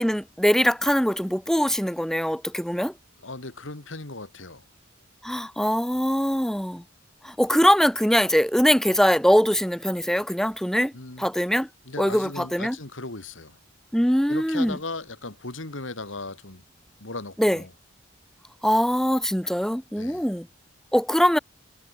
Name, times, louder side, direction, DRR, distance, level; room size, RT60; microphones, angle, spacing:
voice 1, 0.0-2.9 5.2-6.8 7.2-10.9 11.2-11.7 12.0-12.8 13.9-14.8 17.4-17.6 18.6-20.5 20.9-21.4, equal, ahead, 1.4 m, -22 dB
voice 2, 3.2-4.6 10.9-11.3 11.9-13.6 14.3-16.6 17.0-17.7 19.9-20.2, left 3 dB, 75° left, 2.5 m, -37 dB
head